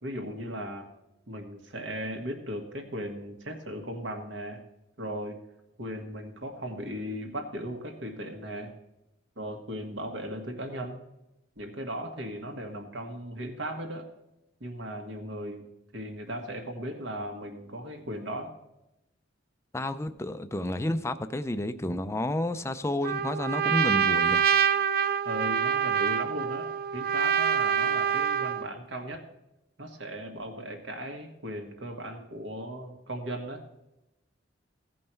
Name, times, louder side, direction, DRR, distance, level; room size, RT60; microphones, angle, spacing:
voice 1, 0.0-0.9 1.3-4.6 5.0-5.4 5.8-8.7 9.4-11.0 11.6-14.1 14.6-15.7 15.9-18.5 25.2-29.2 29.8-33.6, equal, 75° right, 1.6 m, -37 dB
voice 2, 19.7-24.4, left 1 dB, 15° left, 0.5 m, -30 dB
Trumpet, 23.0-28.7, right 8 dB, 55° right, 0.5 m, -26 dB
16.0 x 5.5 x 4.5 m
head